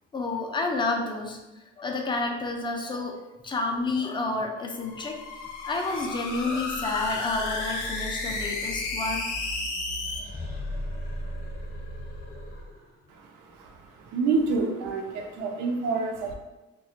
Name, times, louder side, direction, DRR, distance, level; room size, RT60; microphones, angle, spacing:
voice 1, 0.1-1.4 1.8-5.2 5.6-9.3, left 3 dB, 15° left, 2 dB, 0.3 m, -30 dB
sound 1, 4.8-10.2, left 2 dB, 80° left, 0.6 m, -32 dB
sound 2, 10.0-13.1, left 1 dB, 30° left, 0.7 m, -36 dB
voice 2, 13.1-16.3, right 4 dB, 75° right, 3 dB, 0.5 m, -28 dB
2.2 x 2.1 x 2.7 m, 1.0 s
cardioid pair, 90°, 30 cm